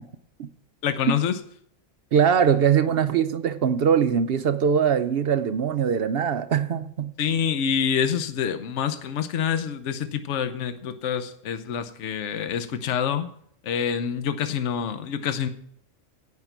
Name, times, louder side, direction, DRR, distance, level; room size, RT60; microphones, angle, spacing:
voice 1, 0.8-1.4 7.2-13.3 13.6-15.5, left 8 dB, 60° left, 1.1 m, -26 dB
voice 2, 2.1-7.1, right 7 dB, 60° right, 0.6 m, -22 dB
17.0 x 5.8 x 5.9 m
omnidirectional pair, 1.5 m